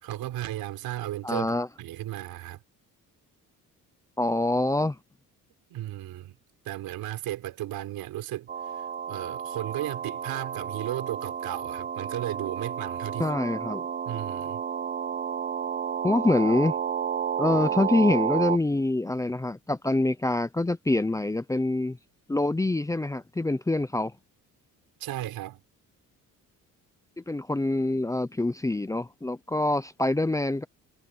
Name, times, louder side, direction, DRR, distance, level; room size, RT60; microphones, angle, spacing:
voice 1, 0.0-2.6 5.7-6.4 6.6-8.5 8.8-13.3 14.1-14.6 25.0-25.6, right 14 dB, 85° right, 4.5 m, -35 dB
voice 2, 1.2-1.7 4.2-5.0 13.2-13.8 16.0-16.8 17.4-22.0 22.3-24.1 27.2-30.6, left 2 dB, 10° left, 0.7 m, -25 dB
sound 1, 8.5-18.6, right 8 dB, 25° right, 0.5 m, -31 dB
cardioid pair, 140°, 35 cm